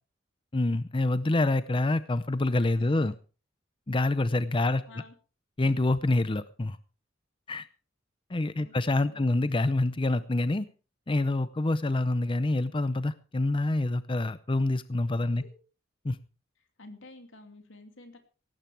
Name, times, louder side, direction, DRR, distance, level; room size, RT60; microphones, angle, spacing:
voice 1, 0.5-3.1 3.9-4.8 5.6-6.8 7.5-7.7 8.3-10.7 11.1-15.4 16.0-16.2, left 2 dB, 25° left, 14 dB, 0.6 m, -26 dB
voice 2, 2.8-3.1 4.8-5.2 8.5-8.7 9.1-9.4 15.4-15.6 16.8-18.2, left 2 dB, 80° left, 6 dB, 2.7 m, -50 dB
18.0 x 15.5 x 3.4 m, 0.35 s
head